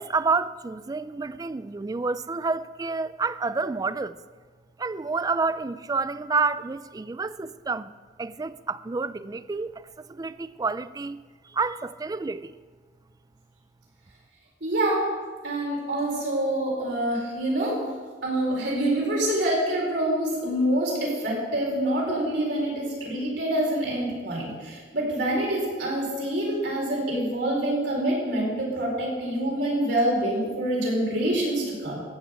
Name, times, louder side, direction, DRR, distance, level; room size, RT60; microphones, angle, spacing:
voice 1, 0.0-4.2 4.8-7.9 8.2-12.5, right 4 dB, 20° right, 0.3 m, -29 dB
voice 2, 14.6-15.1 15.4-17.8 18.2-32.0, right 1 dB, 65° right, 4.6 m, -26 dB
15.0 x 6.3 x 8.2 m
head